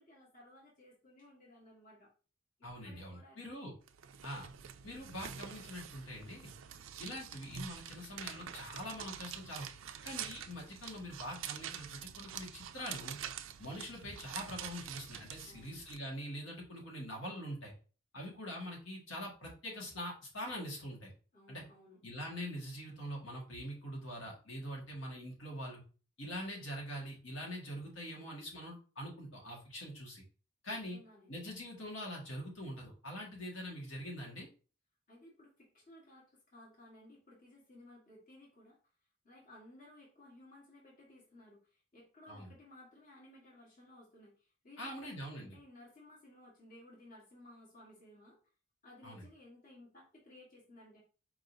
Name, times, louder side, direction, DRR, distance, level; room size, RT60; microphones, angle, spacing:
voice 1, 0.0-2.1 2.8-3.6 15.4-15.8 21.3-22.0 30.7-31.3 35.1-38.8 39.2-48.4 48.8-51.0, left 1 dB, 40° left, -4 dB, 1.5 m, -58 dB
voice 2, 2.6-3.7 4.2-4.5 4.8-6.5 7.0-9.7 10.0-13.2 13.6-17.7 18.1-21.1 21.5-21.6 22.0-25.8 26.2-30.2 30.6-31.0 31.3-34.5 42.3-42.5 44.8-45.6 49.0-49.2, equal, 70° left, -2 dB, 1.8 m, -44 dB
sound 1, 3.9-16.0, right 9 dB, 75° right, 0.4 m, -46 dB
4.7 x 3.9 x 2.7 m, 0.37 s
head